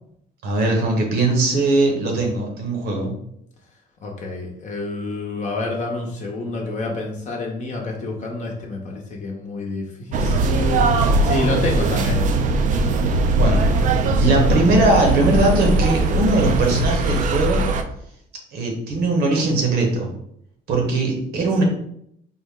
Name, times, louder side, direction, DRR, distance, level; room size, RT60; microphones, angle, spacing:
voice 1, 0.4-3.1 13.3-13.7 14.2-17.7 18.5-20.1 20.7-21.6, right 2 dB, 75° right, 1 dB, 1.1 m, -20 dB
voice 2, 4.0-12.3 20.9-21.0, left 2 dB, 45° left, 0 dB, 0.8 m, -28 dB
sound 1, 10.1-17.8, right 2 dB, 50° right, 0.4 m, -20 dB
3.7 x 2.1 x 3.6 m, 0.72 s
cardioid pair, 110°, 17 cm